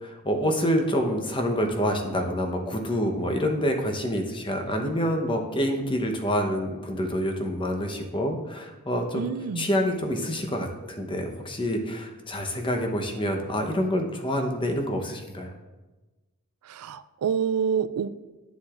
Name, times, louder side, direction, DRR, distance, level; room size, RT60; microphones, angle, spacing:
voice 1, 0.0-9.3 9.6-15.5, equal, 20° left, 3 dB, 0.8 m, -27 dB
voice 2, 9.1-9.7 16.6-18.1, right 7 dB, 85° right, 14 dB, 0.4 m, -27 dB
11.5 x 7.2 x 2.5 m, 1.2 s
head